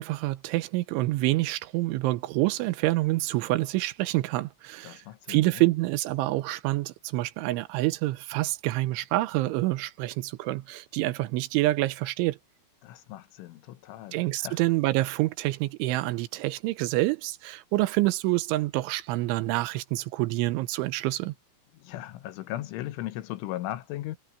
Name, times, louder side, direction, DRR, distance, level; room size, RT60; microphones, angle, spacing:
voice 1, 0.0-5.0 5.3-12.4 14.1-21.3, right 18 dB, 85° right, 3.1 m, -27 dB
voice 2, 4.8-5.7 12.8-14.7 21.7-24.2, left 15 dB, 80° left, 3.5 m, -37 dB
omnidirectional pair, 5.6 m